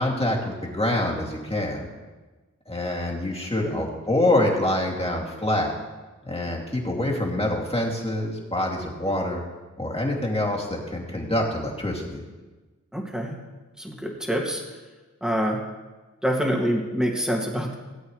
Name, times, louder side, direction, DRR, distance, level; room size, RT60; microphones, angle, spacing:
voice 1, 0.0-1.9 2.7-5.7 6.2-9.4 9.8-12.2, left 1 dB, 20° left, -2 dB, 2.6 m, -26 dB
voice 2, 12.9-13.3 13.8-14.6 15.2-15.6 16.2-17.7, equal, ahead, 0 dB, 2.2 m, -26 dB
18.0 x 8.2 x 3.2 m, 1.2 s
cardioid pair, 45°, 31 cm